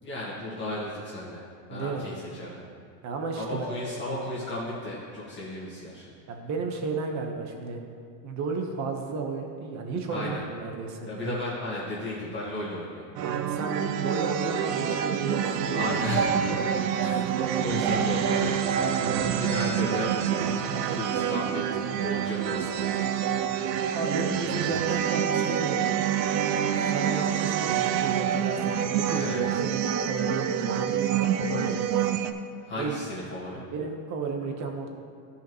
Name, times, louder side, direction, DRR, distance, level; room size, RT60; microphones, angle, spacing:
voice 1, 0.0-2.6 3.3-6.0 10.1-10.4 11.0-13.1 15.7-16.6 16.9-18.9 19.4-20.1 20.9-21.6 21.9-22.8 29.1-29.4 32.6-33.6, left 1 dB, 20° left, -8 dB, 1.7 m, -34 dB
voice 2, 1.7-2.0 3.0-3.6 6.3-7.8 8.2-11.4 13.2-16.0 16.6-16.7 17.0-17.2 18.7-19.5 23.9-25.9 26.9-31.8 32.8-33.0 33.7-34.9, right 4 dB, 35° right, 3 dB, 1.2 m, -33 dB
Mallet percussion, 3.6-5.6, left 1 dB, 15° right, 1.7 m, -46 dB
sound 1, 13.2-32.3, right 8 dB, 85° right, 0.7 m, -27 dB
14.5 x 5.6 x 3.1 m, 2.2 s
supercardioid pair, 135°, 49 cm